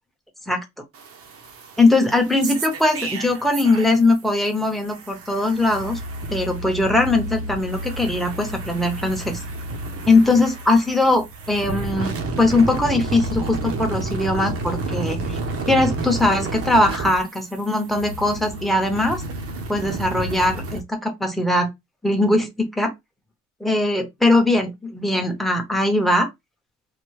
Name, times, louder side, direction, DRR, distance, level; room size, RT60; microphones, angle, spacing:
sound 1, 0.9-4.2 4.4-20.8, right 2 dB, 50° right, 0.7 m, -31 dB
voice 1, 1.8-6.0 6.3-9.4 10.1-15.4 15.7-19.2 19.7-21.7 22.0-22.9 23.6-26.3, left 2 dB, ahead, 0.8 m, -20 dB
3.3 x 2.2 x 3.1 m
cardioid pair, 130°, 30 cm